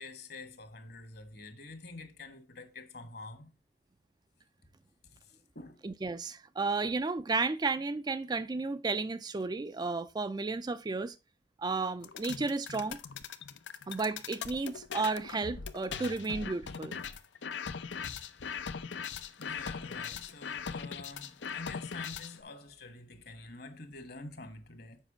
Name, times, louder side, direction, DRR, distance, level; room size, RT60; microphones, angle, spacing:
voice 1, 0.0-3.5 5.5-5.8 19.4-25.0, left 3 dB, 60° left, 1.6 m, -47 dB
voice 2, 5.8-11.2 11.6-13.0 13.9-17.0, right 3 dB, 25° right, 0.3 m, -33 dB
sound 1, 12.0-22.4, left 6 dB, 80° left, 0.6 m, -40 dB
7.3 x 5.3 x 4.9 m
head